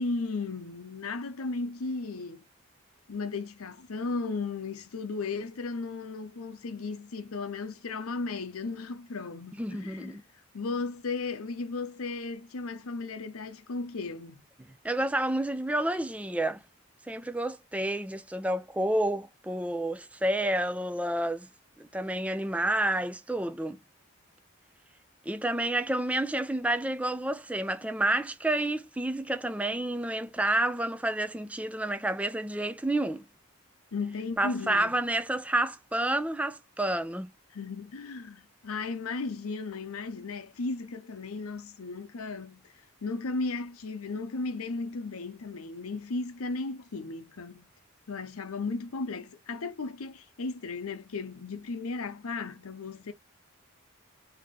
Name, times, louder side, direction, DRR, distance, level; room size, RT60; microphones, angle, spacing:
voice 1, 0.0-2.4 3.1-10.2 10.5-14.4 33.9-34.9 37.5-42.7 43.0-47.6 48.1-53.1, left 3 dB, 85° left, 0.7 m, -35 dB
voice 2, 9.6-10.2 14.8-16.6 17.1-21.5 21.8-23.8 25.3-33.2 34.4-37.3, right 1 dB, 5° right, 0.4 m, -29 dB
3.6 x 2.8 x 3.7 m
head